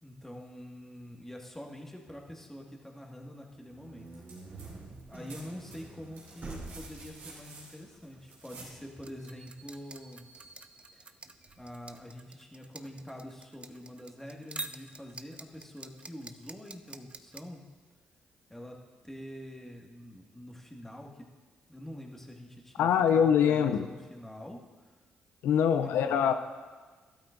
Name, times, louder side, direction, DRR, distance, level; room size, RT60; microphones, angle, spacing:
voice 1, 0.0-4.1 5.1-10.3 10.9-11.1 11.6-17.6 18.5-18.8 19.0-21.3 21.7-24.6 25.7-26.3, equal, 10° left, 0 dB, 1.8 m, -45 dB
sound 1, 3.5-12.2, right 3 dB, 55° right, 3.0 m, -49 dB
sound 2, 4.1-4.7 4.9-8.8 10.4-10.5, right 3 dB, 85° right, 3.2 m, -51 dB
sound 3, 9.0-17.4, right 3 dB, 30° right, 0.6 m, -45 dB
voice 2, 22.8-23.9 25.4-26.3, left 8 dB, 80° left, 9 dB, 0.4 m, -24 dB
12.5 x 12.5 x 2.6 m, 1.4 s
supercardioid pair, 55°, 4 cm